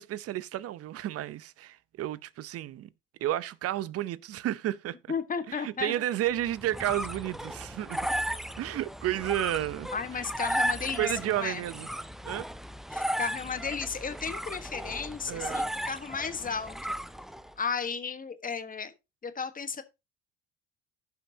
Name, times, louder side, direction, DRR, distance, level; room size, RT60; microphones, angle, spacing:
voice 1, 0.0-2.9 3.2-5.0 5.5-8.1 8.6-9.9 11.0-11.9 12.2-12.5 15.3-15.7, right 13 dB, 50° right, 0.7 m, -32 dB
voice 2, 5.1-5.9 9.9-11.6 12.9-16.9 17.6-18.9 19.2-19.8, left 5 dB, 25° left, 1.3 m, -34 dB
sound 1, 6.4-17.5, equal, ahead, 0.5 m, -35 dB
15.0 x 5.8 x 2.8 m
hypercardioid pair, 75°, 31 cm